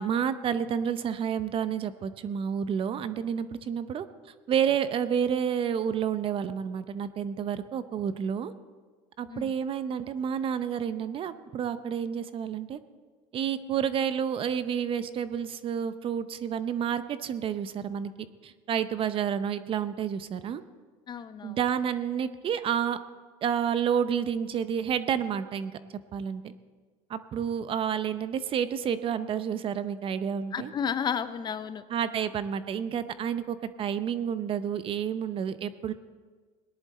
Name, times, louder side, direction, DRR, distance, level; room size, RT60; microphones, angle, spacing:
voice 1, 0.0-4.1 4.5-8.5 9.2-12.8 13.3-18.1 18.4-20.6 21.4-23.0 23.4-25.7 26.1-26.5 27.1-30.7 31.9-35.9, right 8 dB, 40° right, 13 dB, 0.7 m, -30 dB
voice 2, 21.1-21.6 30.5-31.8, left 7 dB, 30° left, 13 dB, 0.6 m, -32 dB
18.5 x 10.5 x 4.2 m, 1.5 s
supercardioid pair, 105°, 14 cm